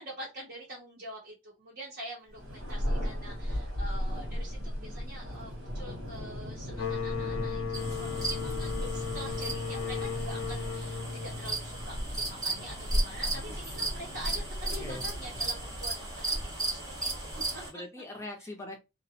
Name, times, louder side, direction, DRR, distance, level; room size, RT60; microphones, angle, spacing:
voice 1, 0.0-17.8 18.4-18.5, right 1 dB, 50° right, -4 dB, 0.7 m, -45 dB
Thunder, 2.3-16.0, equal, 85° right, 1.1 m, -37 dB
sound 1, 6.7-12.2, left 5 dB, 85° left, 0.5 m, -36 dB
sound 2, 7.7-17.7, right 2 dB, 15° right, 0.8 m, -36 dB
voice 2, 14.3-15.1 17.7-18.8, left 1 dB, 15° left, 1 dB, 0.4 m, -43 dB
2.3 x 2.0 x 2.7 m, 0.25 s
head